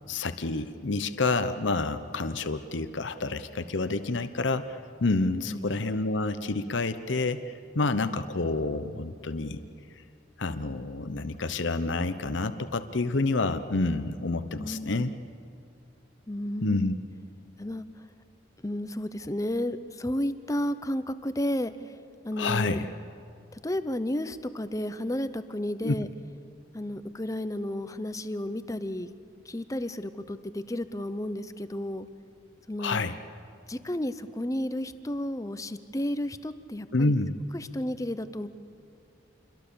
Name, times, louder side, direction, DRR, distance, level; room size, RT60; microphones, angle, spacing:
voice 1, 0.1-9.6 10.4-15.1 16.6-16.9 22.4-22.9 25.8-25.9 32.8-33.1 36.9-37.3, left 3 dB, 70° left, 11 dB, 0.8 m, -28 dB
voice 2, 14.6-15.0 16.3-16.8 17.6-18.0 18.6-22.0 22.2-22.8 23.6-26.1 26.7-29.1 29.4-32.1 32.7-33.0 33.7-37.1 37.5-38.5, left 1 dB, 15° left, 12 dB, 0.8 m, -32 dB
28.0 x 22.5 x 7.0 m, 2.4 s
head